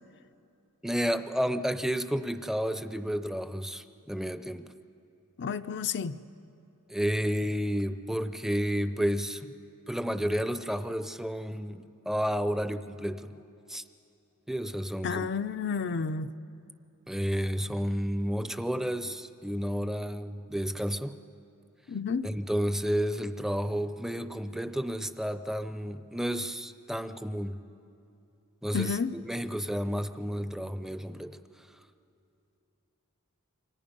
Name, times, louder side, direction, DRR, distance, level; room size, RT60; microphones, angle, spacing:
voice 1, 0.8-4.7 6.9-9.5 9.9-13.4 13.7-13.8 14.5-15.3 17.1-21.2 22.2-27.6 28.6-31.4, equal, ahead, 0.6 m, -31 dB
voice 2, 5.4-6.2 15.0-16.3 21.9-22.3 28.7-29.1, left 5 dB, 50° left, 0.5 m, -31 dB
28.5 x 25.0 x 5.3 m
head